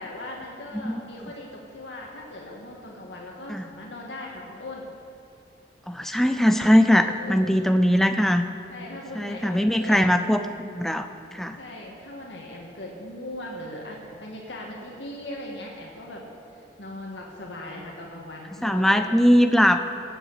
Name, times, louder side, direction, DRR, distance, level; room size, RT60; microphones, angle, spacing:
voice 1, 0.0-4.9 6.5-7.8 8.7-10.0 11.6-16.2 16.8-19.0, left 1 dB, 75° left, -2 dB, 1.9 m, -39 dB
voice 2, 5.9-8.5 9.2-11.6 18.6-19.8, equal, ahead, 7 dB, 0.5 m, -20 dB
18.5 x 7.9 x 8.0 m, 2.6 s
head